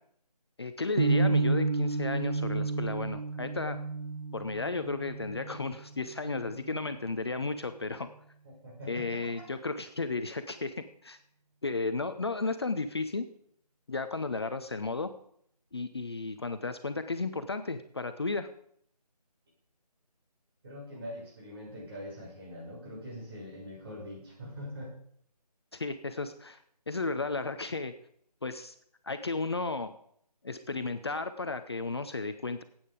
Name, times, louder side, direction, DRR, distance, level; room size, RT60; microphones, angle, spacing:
voice 1, 0.6-3.8 4.3-8.1 8.9-10.7 11.0-11.2 11.6-13.3 13.9-15.1 15.7-18.5 25.7-26.6 26.9-27.9 28.4-28.7 29.0-29.9 30.4-32.6, left 3 dB, 40° left, 10 dB, 0.6 m, -34 dB
sound 1, 1.0-7.0, right 3 dB, 55° right, 1.0 m, -31 dB
voice 2, 8.6-9.3 20.6-24.9, left 1 dB, 35° right, -5 dB, 6.5 m, -43 dB
12.5 x 8.8 x 5.0 m, 0.65 s
figure-of-eight pair, 165°, 21 cm